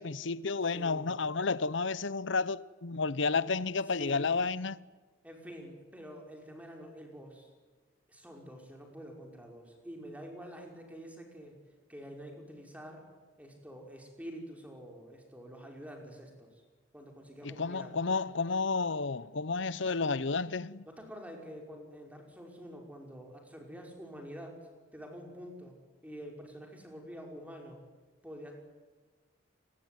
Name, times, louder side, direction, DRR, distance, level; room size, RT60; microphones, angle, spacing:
voice 1, 0.0-4.8 17.4-20.9, left 4 dB, 65° left, 0.8 m, -31 dB
voice 2, 0.7-1.1 4.0-4.3 5.2-7.5 8.1-11.6 11.9-13.1 13.4-16.6 16.9-17.9 20.9-25.8 26.0-27.8 28.2-28.5, equal, 5° right, 5.5 m, -47 dB
29.0 x 21.5 x 9.4 m
head